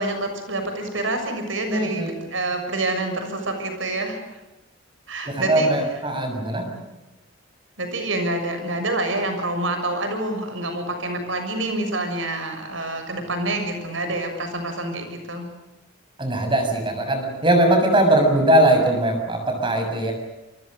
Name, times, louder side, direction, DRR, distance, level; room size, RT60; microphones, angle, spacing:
voice 1, 0.0-4.2 5.1-5.7 7.8-15.5, right 2 dB, 70° right, 6 dB, 6.8 m, -27 dB
voice 2, 1.7-2.1 5.3-6.6 16.2-20.1, right 1 dB, 25° right, 5 dB, 7.0 m, -20 dB
28.5 x 25.0 x 6.7 m, 1.0 s
head